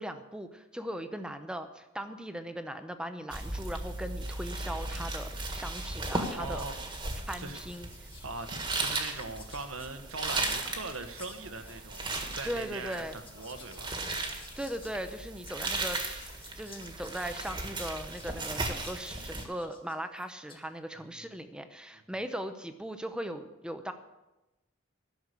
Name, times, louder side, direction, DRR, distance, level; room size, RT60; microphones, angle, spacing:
voice 1, 0.0-6.6 7.3-8.1 12.4-13.2 14.3-23.9, equal, 5° right, 0.6 m, -39 dB
sound 1, 3.3-19.4, right 2 dB, 20° right, 1.6 m, -36 dB
voice 2, 6.3-6.8 7.4-7.6 8.2-13.0 13.3-14.3 21.1-21.2, right 3 dB, 90° right, 1.2 m, -41 dB
Whispering, 7.4-20.7, left 4 dB, 25° left, 1.7 m, -55 dB
12.0 x 6.6 x 8.1 m
head